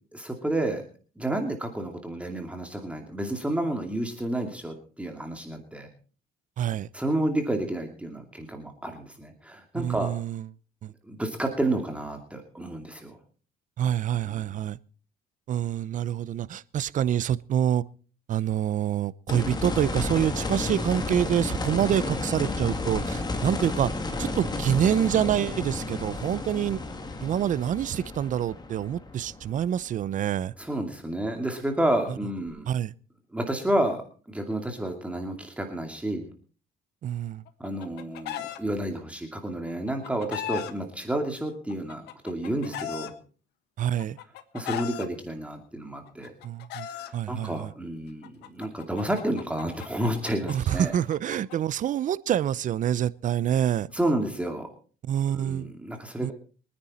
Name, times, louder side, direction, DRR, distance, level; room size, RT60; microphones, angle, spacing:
voice 1, 0.1-0.8 1.2-5.9 6.9-10.1 11.0-13.2 14.2-14.6 30.6-32.7 33.3-34.0 34.3-36.3 37.6-43.1 44.5-46.3 46.8-50.9 53.9-54.7 55.3-56.3, right 1 dB, 5° right, 4 dB, 2.6 m, -30 dB
voice 2, 6.6-6.9 9.7-10.5 10.8-10.9 13.8-14.8 15.5-17.8 18.3-23.9 24.2-26.8 27.2-30.5 32.7-32.9 37.0-37.4 43.8-44.2 46.4-46.9 47.1-47.7 50.5-53.9 55.0-55.7 56.2-56.3, right 10 dB, 50° right, 19 dB, 0.7 m, -26 dB
sound 1, 19.3-30.2 32.5-32.6, left 2 dB, 25° left, 2.5 m, -32 dB
Chicken rooster, 37.5-38.6 39.7-40.7 41.7-43.1 44.0-45.1 46.1-47.1 48.2-51.6, left 11 dB, 80° left, 1.4 m, -37 dB
24.0 x 9.8 x 4.3 m, 0.40 s
cardioid pair, 110°, 17 cm